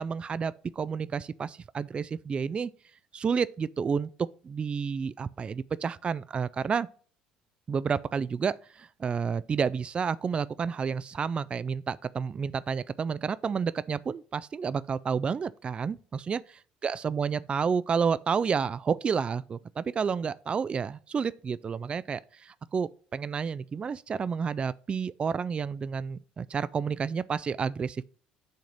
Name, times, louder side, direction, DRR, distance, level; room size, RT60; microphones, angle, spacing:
voice 1, 0.0-2.7 3.1-4.1 4.4-6.9 7.7-16.4 16.8-28.0, right 6 dB, 25° right, 0.3 m, -30 dB
7.8 x 3.9 x 6.1 m
figure-of-eight pair, 55°, 4 cm